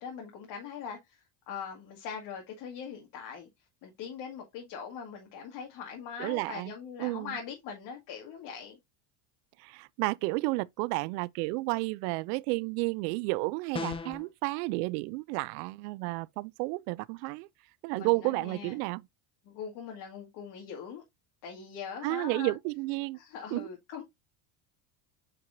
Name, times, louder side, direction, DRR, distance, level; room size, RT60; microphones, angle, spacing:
voice 1, 0.0-3.5 3.8-8.8 17.9-18.8 19.5-21.0 21.4-22.5 23.1-24.0, left 7 dB, 55° left, 2.1 m, -41 dB
voice 2, 6.2-6.7 7.0-7.4 9.6-17.5 17.8-19.0 22.0-23.2 23.5-23.7, right 24 dB, 70° right, 0.5 m, -31 dB
sound 1, 13.7-14.3, left 4 dB, 10° left, 0.5 m, -35 dB
8.7 x 4.7 x 2.6 m
cardioid pair, 140°, 48 cm